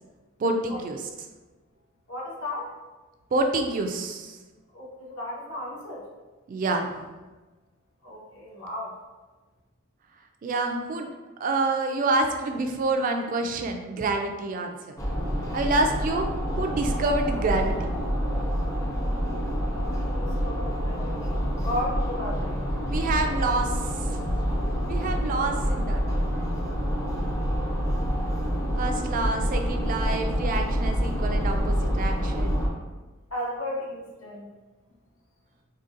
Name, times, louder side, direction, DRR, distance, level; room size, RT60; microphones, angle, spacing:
voice 1, 0.4-1.0 3.3-4.4 6.5-7.1 10.4-11.1 11.4-15.0 15.5-16.3 16.5-17.9 22.9-24.2 24.9-26.0 28.8-32.6, right 2 dB, 40° right, 4 dB, 0.3 m, -27 dB
voice 2, 2.1-2.7 4.7-6.1 8.0-8.9 20.0-22.6 26.3-26.5 33.3-34.5, left 1 dB, 75° left, -5 dB, 1.1 m, -34 dB
sound 1, 15.0-32.7, equal, 15° left, 0.5 m, -27 dB
3.8 x 2.7 x 2.6 m, 1.2 s
head